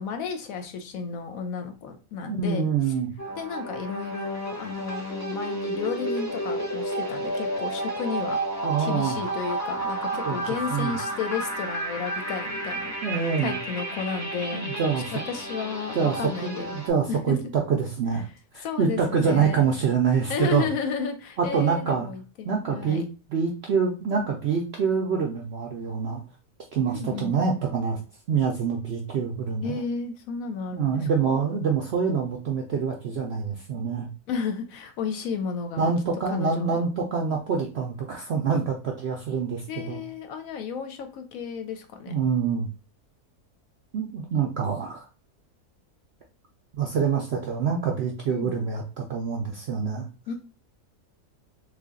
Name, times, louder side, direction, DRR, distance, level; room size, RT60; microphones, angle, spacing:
voice 1, 0.0-2.9 3.4-8.4 8.8-12.9 13.4-14.6 15.1-16.7 17.1-17.4 18.6-19.7 20.3-23.1 26.9-27.4 29.6-31.4 34.3-35.9 36.3-36.8 39.7-42.1 48.3-48.5 50.3-50.4, left 6 dB, 70° left, 7 dB, 0.9 m, -33 dB
voice 2, 2.3-3.1 8.6-9.2 10.1-10.4 10.7-10.9 13.0-13.5 14.5-15.1 15.9-16.2 16.4-18.3 18.5-20.7 21.4-22.1 22.4-23.0 23.3-26.2 26.7-28.0 28.3-29.8 30.7-34.1 35.8-40.0 42.1-42.7 43.9-45.1 46.8-50.0, right 6 dB, 70° right, 1 dB, 0.6 m, -26 dB
sound 1, 3.2-16.9, right 1 dB, 20° left, 0.5 m, -31 dB
3.3 x 2.3 x 3.6 m, 0.33 s
omnidirectional pair, 1.7 m